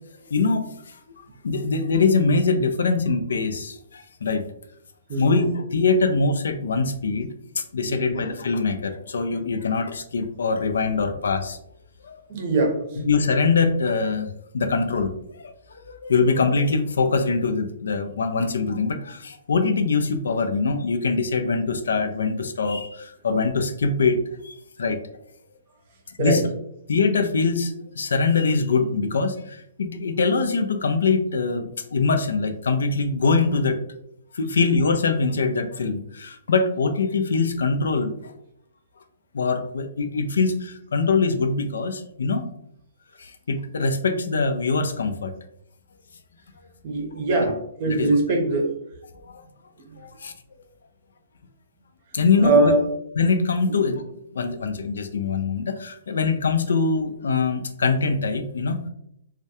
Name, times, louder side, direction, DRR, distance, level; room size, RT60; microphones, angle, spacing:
voice 1, 0.3-1.0 1.4-4.4 5.2-7.3 7.6-11.6 12.0-12.2 13.0-14.3 14.5-24.2 24.4-25.0 26.2-26.4 26.9-33.8 34.3-38.3 39.3-42.4 43.2-45.3 46.6-46.7 47.4-47.5 47.9-48.1 49.1-49.4 50.0-50.3 52.1-52.7 53.2-54.0 54.3-58.8, left 4 dB, 80° left, 7 dB, 0.3 m, -23 dB
voice 2, 5.1-5.4 7.9-8.2 12.3-12.8 26.2-26.5 46.8-48.7 49.8-49.9 52.3-52.9 53.7-53.8, right 3 dB, 45° right, 2 dB, 0.6 m, -22 dB
2.2 x 2.1 x 2.8 m, 0.76 s
hypercardioid pair, 140°, 0 cm